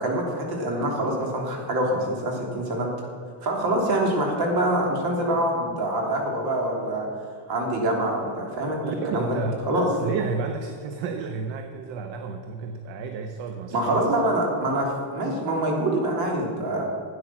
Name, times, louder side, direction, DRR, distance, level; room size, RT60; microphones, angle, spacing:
voice 1, 0.0-2.9 3.4-7.1 7.5-8.8 9.1-9.4 9.7-9.9 13.7-16.8, right 1 dB, 55° right, 0 dB, 3.4 m, -25 dB
voice 2, 8.8-9.5 10.0-14.1, right 5 dB, 70° right, 6 dB, 1.1 m, -31 dB
12.5 x 9.2 x 5.9 m, 2.4 s
cardioid pair, 135°, 45 cm